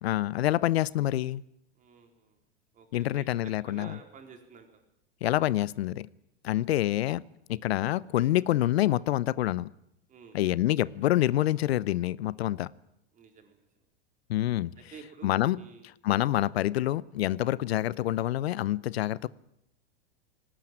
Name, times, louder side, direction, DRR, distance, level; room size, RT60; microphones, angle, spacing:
voice 1, 0.0-1.4 2.9-4.0 5.2-6.1 6.4-7.2 7.5-9.7 10.3-12.7 14.3-14.7 15.2-15.6 16.0-19.3, left 14 dB, 85° left, 0.7 m, -27 dB
voice 2, 1.8-2.4 2.7-4.8 7.9-8.0 10.1-10.4 13.1-13.7 14.8-15.9, right 6 dB, 25° right, 4.3 m, -51 dB
19.5 x 18.5 x 9.1 m
supercardioid pair, 135°, 30 cm